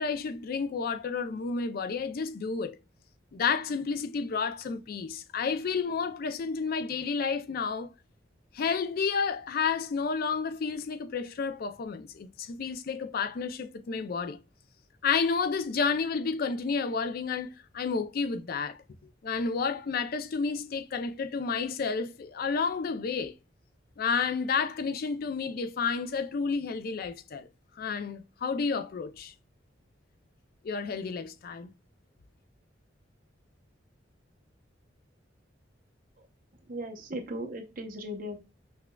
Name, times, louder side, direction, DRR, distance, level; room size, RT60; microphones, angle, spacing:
voice 1, 0.0-2.8 3.3-7.9 8.5-14.4 15.0-18.8 19.2-23.3 24.0-27.5 27.8-29.3 30.6-31.7, left 5 dB, 50° left, 0.4 m, -31 dB
voice 2, 36.7-38.4, equal, 45° right, 0.7 m, -37 dB
5.8 x 2.2 x 2.2 m
head